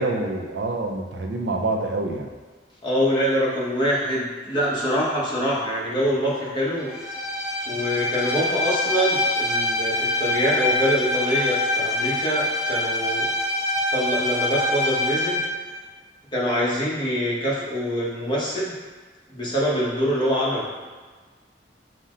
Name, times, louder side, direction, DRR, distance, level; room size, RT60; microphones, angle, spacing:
voice 1, 0.0-2.3, right 2 dB, 85° right, 2 dB, 0.5 m, -26 dB
voice 2, 2.8-6.9 7.7-13.3 13.9-15.4 16.3-18.7 19.3-20.7, equal, 25° left, -6 dB, 1.0 m, -24 dB
Bowed string instrument, 6.9-15.5, left 2 dB, 5° right, 0.6 m, -25 dB
5.4 x 2.1 x 3.7 m, 1.4 s
head